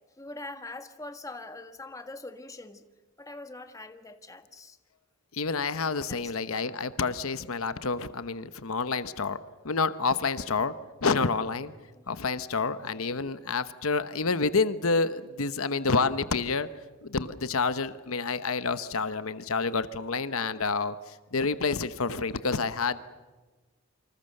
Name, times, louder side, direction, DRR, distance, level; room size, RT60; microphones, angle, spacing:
voice 1, 0.2-2.8 3.2-4.8 6.1-6.9 11.9-12.1 12.9-13.1, left 2 dB, 15° left, 7 dB, 1.6 m, -43 dB
voice 2, 5.3-9.4 9.6-10.7 11.0-11.7 12.1-16.7 17.0-23.0, left 4 dB, 75° left, 12 dB, 1.0 m, -28 dB
28.0 x 26.0 x 6.6 m, 1.3 s
head